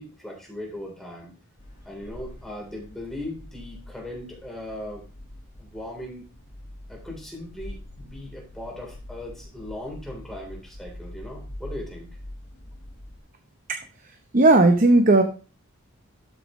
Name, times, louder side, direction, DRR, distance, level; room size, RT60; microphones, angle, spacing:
voice 1, 0.0-1.3 1.9-5.0 5.6-6.2 6.9-12.1, left 1 dB, ahead, -2 dB, 3.5 m, -38 dB
sound 1, 1.6-13.2, left 1 dB, 70° left, 4.7 m, -43 dB
voice 2, 14.3-15.2, right 2 dB, 40° right, 5 dB, 0.8 m, -16 dB
12.5 x 6.8 x 3.1 m, 0.34 s
head